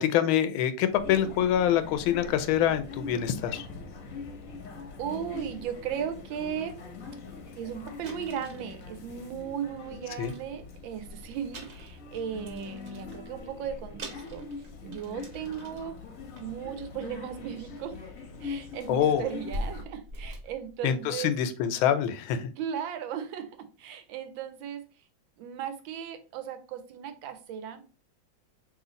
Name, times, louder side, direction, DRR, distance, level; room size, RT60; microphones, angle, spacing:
voice 1, 0.0-3.7 10.2-10.3 18.9-19.2 20.8-22.5, left 10 dB, 85° left, 10 dB, 1.4 m, -25 dB
sound 1, 0.9-19.8, left 4 dB, 60° left, 0.9 m, -43 dB
sound 2, 4.8-4.9 5.3-5.6 6.3-6.4 6.6-6.8 7.2-7.3 7.5-7.6 8.0-9.8 10.1-11.0 11.5-13.2 13.7-13.8 14.0-16.0 16.3-16.6 17.7-17.8 18.3-21.3, equal, 50° right, 1.1 m, -43 dB
voice 2, 5.0-6.8 7.6-14.4 14.8-16.0 16.4-18.0 18.4-21.3 22.6-24.8 25.4-27.8, right 8 dB, 80° right, 8 dB, 1.4 m, -36 dB
3.1 x 3.0 x 3.8 m, 0.35 s
omnidirectional pair, 2.2 m